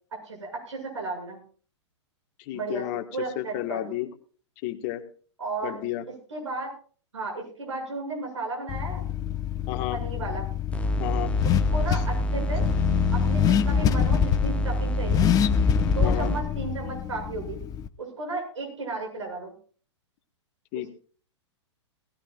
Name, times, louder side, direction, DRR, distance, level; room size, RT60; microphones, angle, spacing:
voice 1, 0.2-1.4 2.5-2.8 3.1-3.8 5.4-5.8 6.3-6.7 7.1-9.0 9.9-10.5 11.4-12.7 13.1-15.3 15.9-17.6 18.0-19.5, right 3 dB, 75° right, 0 dB, 7.8 m, -34 dB
voice 2, 2.4-3.0 3.3-4.1 4.6-5.0 5.6-6.0 9.7-10.0 11.0-11.3 11.9-12.0 16.0-16.3 20.7-20.9, left 15 dB, 40° left, 7 dB, 1.7 m, -31 dB
Car / Accelerating revving vroom, 8.7-17.9, left 10 dB, 25° left, 0.8 m, -26 dB
sound 1, 10.7-16.4, right 1 dB, 10° left, 1.3 m, -27 dB
19.0 x 16.0 x 2.5 m, 0.42 s
figure-of-eight pair, 105°, 15 cm